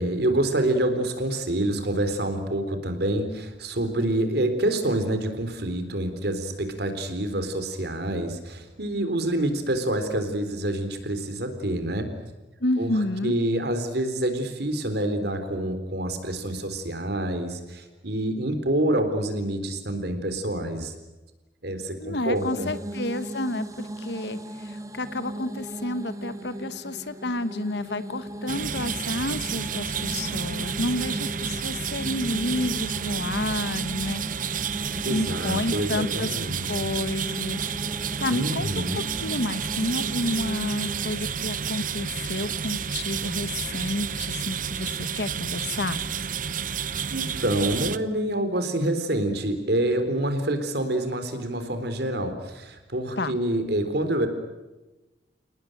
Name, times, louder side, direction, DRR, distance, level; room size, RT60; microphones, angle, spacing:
voice 1, 0.0-12.1 12.8-20.9 21.6-22.7 35.0-36.9 38.3-39.0 47.1-54.3, right 1 dB, 65° right, 8 dB, 3.9 m, -27 dB
voice 2, 12.6-13.4 22.0-34.2 35.1-36.3 36.7-37.7 38.2-38.8 39.2-46.0 53.2-53.4, left 2 dB, 70° left, 13 dB, 1.4 m, -30 dB
sound 1, 22.4-41.3, right 1 dB, 20° right, 1.8 m, -37 dB
sound 2, 28.5-48.0, right 7 dB, 50° right, 0.9 m, -31 dB
29.0 x 19.0 x 9.1 m, 1.1 s
head